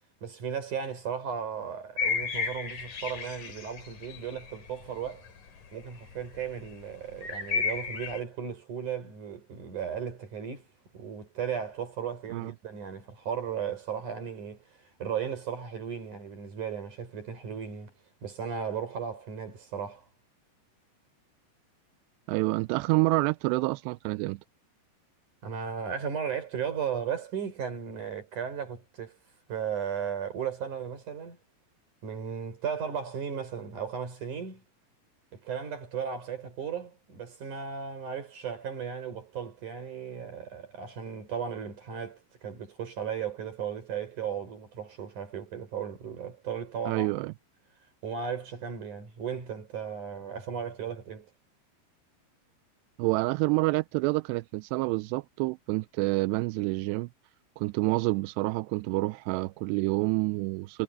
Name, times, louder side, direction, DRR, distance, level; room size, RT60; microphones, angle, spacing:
voice 1, 0.2-5.3 5.7-10.7 10.9-14.6 15.0-17.9 18.2-20.0 25.4-29.2 29.5-31.4 32.0-34.6 35.3-47.2 48.0-51.3, right 7 dB, 45° right, 6.3 m, -35 dB
sound 1, 2.0-5.5 5.7-8.2, left 5 dB, 50° left, 4.2 m, -33 dB
voice 2, 22.3-24.4 46.9-47.3 53.0-57.1 57.6-60.8, right 23 dB, 90° right, 2.7 m, -28 dB
omnidirectional pair, 4.8 m